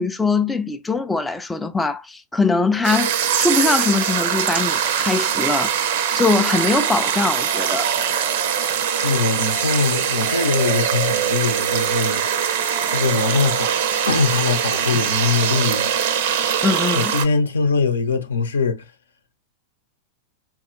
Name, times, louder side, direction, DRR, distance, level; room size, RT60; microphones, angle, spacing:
voice 1, 0.0-7.9 16.6-17.2, left 3 dB, 5° left, 0.4 m, -22 dB
sound 1, 2.8-17.3, right 8 dB, 55° right, 0.5 m, -22 dB
voice 2, 8.9-12.3 12.9-13.7 14.1-16.0 16.9-18.9, left 4 dB, 70° left, 0.7 m, -22 dB
4.5 x 2.7 x 2.5 m
figure-of-eight pair, 90°, 0 cm